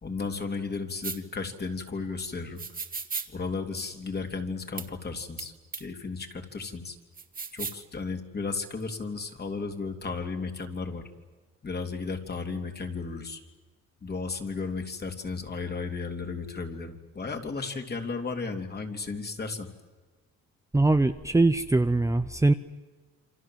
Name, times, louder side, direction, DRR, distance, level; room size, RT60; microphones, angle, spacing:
voice 1, 0.0-2.6 3.3-7.0 7.5-11.1 11.6-13.4 14.0-19.7, left 4 dB, 30° left, 4 dB, 3.3 m, -34 dB
sound 1, 1.0-1.2 2.6-3.3 4.8-4.9 5.4-5.5 5.7-5.8 7.2-7.8, right 5 dB, 30° right, 2.3 m, -35 dB
voice 2, 20.7-22.5, right 2 dB, 10° right, 8 dB, 0.8 m, -22 dB
28.0 x 26.0 x 7.7 m, 1.4 s
cardioid pair, 100°, 30 cm